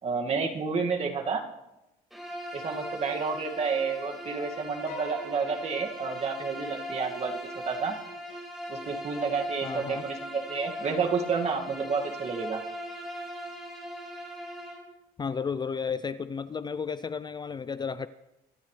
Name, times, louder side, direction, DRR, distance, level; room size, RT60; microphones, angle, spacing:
voice 1, 0.0-1.4 2.5-7.4 7.7-7.9 8.7-12.6, right 5 dB, 40° right, 2 dB, 2.1 m, -30 dB
Bowed string instrument, 2.1-14.9, equal, ahead, 4.8 m, -39 dB
sound 1, 4.9-7.4, left 2 dB, 85° left, 6.3 m, -46 dB
voice 2, 9.6-10.0 15.2-18.1, left 6 dB, 25° left, 15 dB, 0.5 m, -33 dB
24.5 x 12.5 x 3.3 m, 0.92 s
cardioid pair, 110°, 17 cm